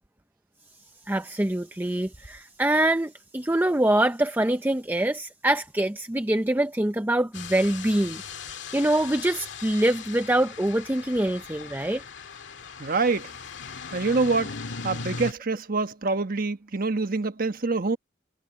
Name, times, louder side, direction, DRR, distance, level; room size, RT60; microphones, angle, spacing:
voice 1, 1.1-8.2 8.7-12.0, right 1 dB, 10° right, 0.6 m, -24 dB
sound 1, 7.3-15.3, left 5 dB, 75° left, 2.0 m, -38 dB
voice 2, 12.8-13.3 13.9-14.5 14.8-18.0, right 3 dB, 50° right, 1.3 m, -25 dB
head